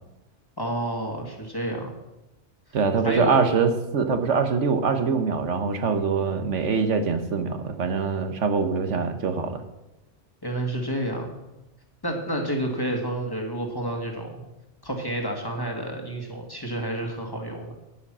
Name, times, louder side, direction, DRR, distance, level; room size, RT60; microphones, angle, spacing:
voice 1, 0.6-1.9 3.0-3.5 10.4-11.4 12.0-14.4 14.8-17.7, right 1 dB, 20° left, 2 dB, 1.9 m, -29 dB
voice 2, 2.7-9.6, right 5 dB, 85° right, 8 dB, 1.3 m, -24 dB
10.0 x 8.9 x 6.1 m, 0.96 s
omnidirectional pair, 1.2 m